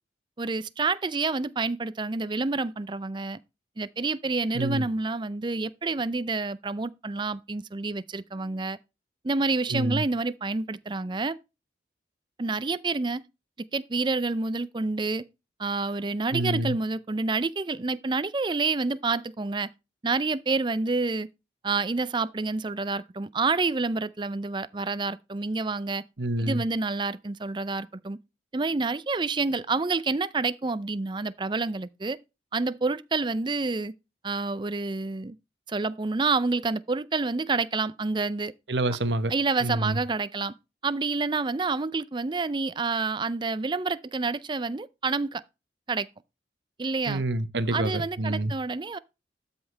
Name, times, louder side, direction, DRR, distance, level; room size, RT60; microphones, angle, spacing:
voice 1, 0.4-3.4 3.8-8.8 9.2-11.4 12.4-13.2 13.7-15.3 15.6-19.7 20.0-21.3 21.6-26.0 26.4-28.2 28.5-32.2 32.5-33.9 34.2-35.4 35.7-38.5 39.3-40.5 40.8-45.4 45.9-46.1 46.8-47.2 47.7-49.0, right 3 dB, 25° right, 0.5 m, -28 dB
voice 2, 4.5-4.9 9.7-10.1 16.3-16.8 26.2-26.6 38.7-39.3 39.6-40.0 47.1-48.5, right 1 dB, 75° right, 1.1 m, -27 dB
12.5 x 5.5 x 3.3 m
head